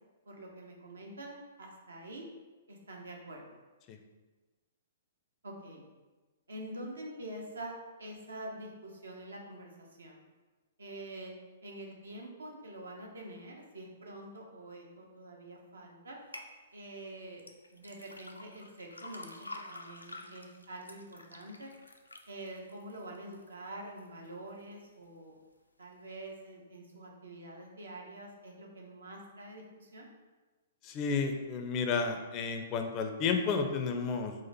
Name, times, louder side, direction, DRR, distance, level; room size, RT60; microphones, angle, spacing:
voice 1, 0.3-2.3 2.7-3.5 5.4-5.8 6.5-7.7 8.0-10.2 10.8-11.3 11.6-16.2 16.7-17.4 17.7-19.3 19.7-21.7 22.3-25.3 25.8-30.1, right 1 dB, 75° right, 0 dB, 0.9 m, -46 dB
sound 1, 16.3-16.5 17.4-23.5 24.0-24.5 25.0-25.1, left 2 dB, 90° left, 0.4 m, -48 dB
voice 2, 30.8-34.4, left 5 dB, 30° left, 5 dB, 0.4 m, -31 dB
4.2 x 2.5 x 4.0 m, 1.2 s
figure-of-eight pair, 115°, 0 cm